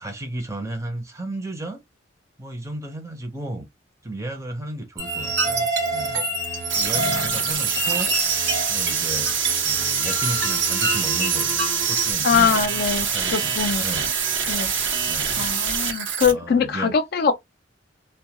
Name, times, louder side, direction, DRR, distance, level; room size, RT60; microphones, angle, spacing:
voice 1, 0.0-1.8 2.4-3.7 4.0-6.2 6.7-8.1 8.7-12.7 13.0-14.1 15.1-15.6 16.3-17.0, right 1 dB, 15° right, 0.6 m, -34 dB
sound 1, 5.0-12.1, right 3 dB, 60° right, 1.1 m, -26 dB
sound 2, 6.7-16.3, right 6 dB, 85° right, 0.8 m, -25 dB
voice 2, 12.2-13.8 14.5-14.7 15.4-17.3, left 6 dB, 55° left, 0.4 m, -22 dB
2.2 x 2.2 x 2.8 m
head